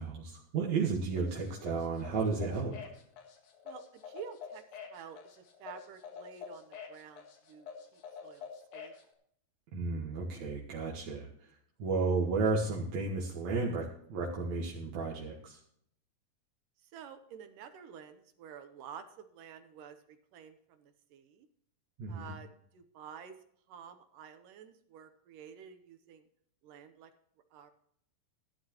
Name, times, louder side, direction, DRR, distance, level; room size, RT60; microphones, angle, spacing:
voice 1, 0.0-2.9 9.7-11.5 11.8-15.6 22.0-22.3, right 4 dB, 60° right, -3 dB, 2.5 m, -33 dB
sound 1, 1.2-9.0, left 6 dB, 85° left, 3.5 m, -47 dB
voice 2, 3.7-5.2 5.6-8.9 16.8-21.5 22.1-22.5 22.7-23.4 23.7-26.2 26.6-27.1 27.5-27.7, right 8 dB, 75° right, 8 dB, 2.4 m, -50 dB
15.0 x 12.0 x 2.9 m, 0.68 s
omnidirectional pair, 4.0 m